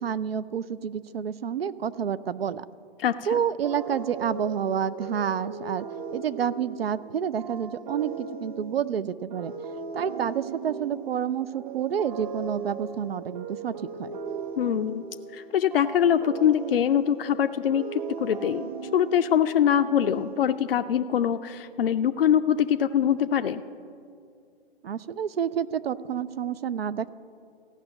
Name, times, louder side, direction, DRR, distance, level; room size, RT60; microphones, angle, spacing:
voice 1, 0.0-2.6 3.3-5.9 6.1-9.5 9.9-14.1 24.8-27.1, right 8 dB, 70° right, 16 dB, 0.6 m, -29 dB
voice 2, 3.0-3.4 14.6-15.0 15.3-23.6, left 9 dB, 65° left, 9 dB, 0.5 m, -23 dB
sound 1, 3.6-20.8, right 5 dB, 50° right, 1.3 m, -38 dB
14.5 x 6.1 x 8.9 m, 2.3 s
figure-of-eight pair, 125°, 31 cm